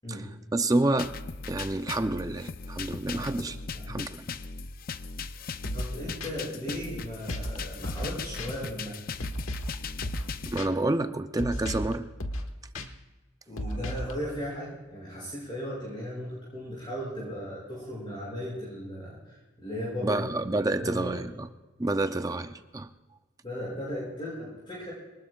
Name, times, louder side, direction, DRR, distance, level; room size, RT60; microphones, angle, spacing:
voice 1, 0.5-1.1 1.5-3.6 3.9-4.4 10.4-12.1 20.0-21.5 21.8-22.9, right 2 dB, 15° right, 9 dB, 0.5 m, -28 dB
sound 1, 1.0-10.6, left 4 dB, 45° left, 0.5 m, -38 dB
sound 2, 5.6-5.9 6.2-6.3 7.3-7.6 7.8-8.1 8.4-8.5 9.2-9.7 10.0-10.3 10.6-10.7 11.4-11.9 12.2-12.5 12.7-12.9 13.6-14.1, equal, 90° left, 1.4 m, -33 dB
voice 2, 5.7-9.0 13.5-20.3 20.6-21.2 23.4-24.9, equal, 25° left, -7 dB, 6.7 m, -37 dB
24.5 x 20.0 x 2.4 m, 1.2 s
head